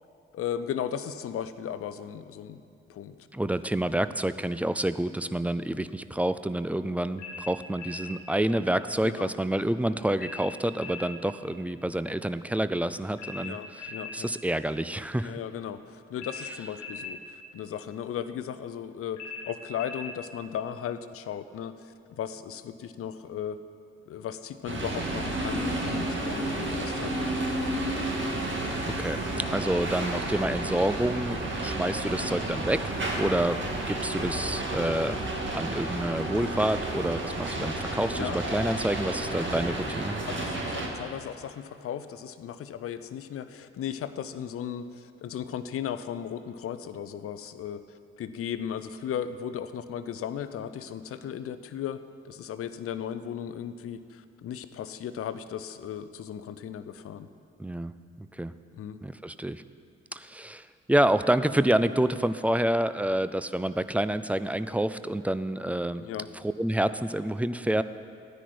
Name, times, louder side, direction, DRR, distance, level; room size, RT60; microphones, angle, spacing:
voice 1, 0.3-2.6 2.9-3.5 9.0-9.3 13.4-14.3 15.2-23.6 24.1-27.5 29.5-29.7 38.1-38.4 40.3-47.8 48.2-52.0 52.2-57.3 58.8-59.0 66.0-66.3, left 9 dB, 45° left, 12 dB, 0.6 m, -36 dB
voice 2, 3.3-15.4 29.0-33.6 33.9-35.2 35.5-40.2 57.6-57.9 58.3-58.5 59.0-59.6 60.1-66.0 66.3-67.8, right 1 dB, 5° right, 13 dB, 0.4 m, -28 dB
sound 1, 7.2-8.2 10.2-11.1 13.2-14.2 16.2-17.2 19.2-20.2, left 3 dB, 60° left, 1.1 m, -40 dB
sound 2, 24.7-40.9, right 1 dB, 35° right, 1.9 m, -31 dB
14.0 x 9.9 x 4.4 m, 2.4 s
figure-of-eight pair, 40°, 31 cm